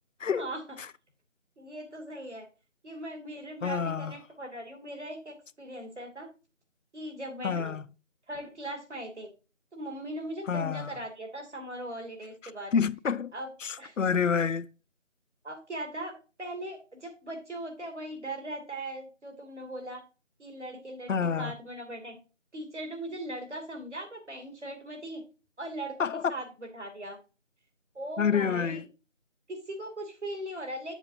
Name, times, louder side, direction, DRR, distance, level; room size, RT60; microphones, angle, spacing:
voice 1, 1.6-2.5 2.8-6.3 6.9-7.7 8.3-9.3 9.7-12.7 13.3-13.5 13.8-13.9 15.4-16.1 16.4-20.0 20.4-22.2 22.5-25.2 25.6-27.2 27.9-28.8 29.5-30.9, right 1 dB, 65° right, 2.8 m, -39 dB
voice 2, 3.6-4.1 7.4-7.8 10.5-10.9 12.7-13.3 13.6-14.7 21.1-21.5 26.0-26.2 28.2-28.8, left 6 dB, 80° left, 0.6 m, -28 dB
8.2 x 7.2 x 2.8 m
figure-of-eight pair, 175°, 38 cm